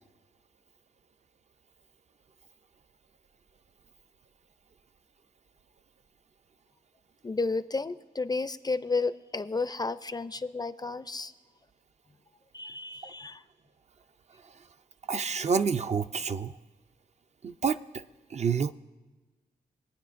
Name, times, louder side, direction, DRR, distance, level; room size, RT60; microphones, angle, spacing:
voice 1, 7.2-11.3 12.5-13.4, left 3 dB, 25° left, 13 dB, 0.4 m, -32 dB
voice 2, 15.1-16.5 17.4-18.0 18.3-18.7, right 6 dB, 40° right, 10 dB, 0.4 m, -28 dB
23.0 x 9.1 x 2.5 m, 1.2 s
cardioid pair, 80°, 17 cm